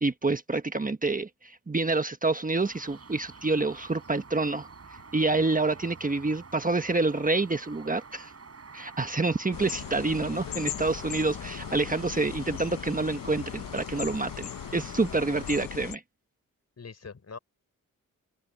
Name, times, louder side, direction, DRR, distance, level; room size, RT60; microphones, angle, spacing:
voice 1, 0.0-4.7 5.1-8.3 8.7-16.0, right 3 dB, 25° right, 1.3 m, -27 dB
sound 1, 2.5-15.7, right 4 dB, 45° right, 7.3 m, -48 dB
sound 2, 9.5-16.0, left 11 dB, 80° left, 0.7 m, -38 dB
voice 2, 16.8-17.4, left 5 dB, 50° left, 4.7 m, -44 dB
open air
cardioid pair, 70°, 33 cm